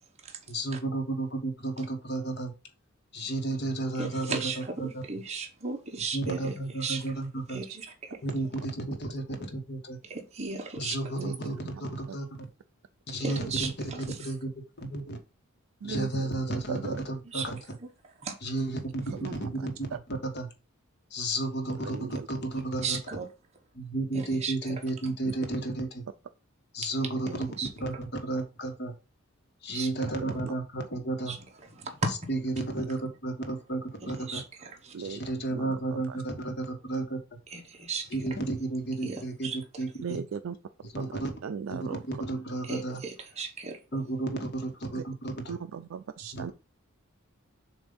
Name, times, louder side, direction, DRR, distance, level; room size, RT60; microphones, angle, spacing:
voice 1, 0.5-2.5 3.1-5.2 6.1-7.6 8.2-10.0 10.7-12.5 13.1-14.5 14.8-15.2 15.8-17.6 18.4-19.9 20.2-20.5 21.1-23.0 23.7-26.0 26.7-27.5 27.8-28.9 29.6-31.4 32.1-34.4 35.0-37.2 38.1-40.2 40.9-41.3 41.7-43.0 43.9-45.6 46.3-46.5, right 2 dB, 50° left, 1.2 m, -32 dB
voice 2, 4.0-6.5 6.8-7.0 7.5-7.9 10.1-11.0 13.2-14.2 17.3-17.5 18.2-18.3 22.8-23.3 24.1-24.7 25.0-25.1 27.3-27.7 29.7-29.9 31.3-31.4 31.8-32.1 34.0-34.9 37.5-38.1 39.0-39.6 42.7-43.8, right 4 dB, 30° right, 1.1 m, -35 dB
voice 3, 11.2-12.2 15.8-17.0 19.1-20.0 21.8-22.3 25.2-25.3 30.2-30.5 34.9-35.2 35.5-36.2 40.0-40.6 40.9-42.2 44.9-45.0 45.5-46.5, right 6 dB, 65° right, 0.4 m, -39 dB
7.1 x 2.6 x 5.3 m
head